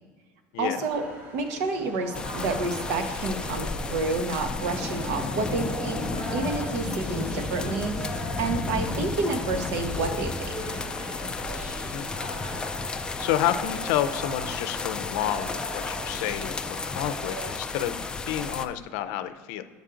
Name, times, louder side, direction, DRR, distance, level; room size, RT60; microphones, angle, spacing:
voice 1, 0.6-1.0 1.3-7.9 8.4-10.5, right 3 dB, 70° right, 5 dB, 1.0 m, -29 dB
sound 1, 0.9-17.5, right 1 dB, 30° right, 1.0 m, -40 dB
sound 2, 2.1-18.7, left 3 dB, 10° left, 0.3 m, -33 dB
voice 2, 13.2-19.6, left 11 dB, 70° left, 11 dB, 0.5 m, -30 dB
8.0 x 5.3 x 3.8 m, 1.5 s
cardioid pair, 155°, 7 cm